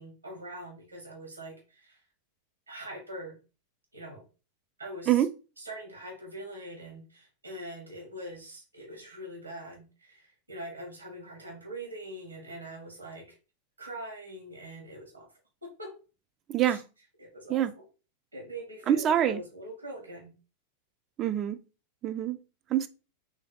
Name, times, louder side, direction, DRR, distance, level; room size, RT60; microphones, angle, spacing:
voice 1, 0.0-2.0 2.7-3.4 3.9-4.2 4.8-5.2 5.6-13.3 13.8-15.3 15.6-15.9 16.6-16.8 17.2-17.9 18.3-20.3, right 1 dB, 80° right, 1.6 m, -43 dB
voice 2, 16.5-16.8 17.5-17.7 18.9-19.4 21.2-21.6 22.0-22.4 22.7-22.9, right 11 dB, 30° right, 0.4 m, -25 dB
3.9 x 3.3 x 3.8 m
figure-of-eight pair, 90°, 0 cm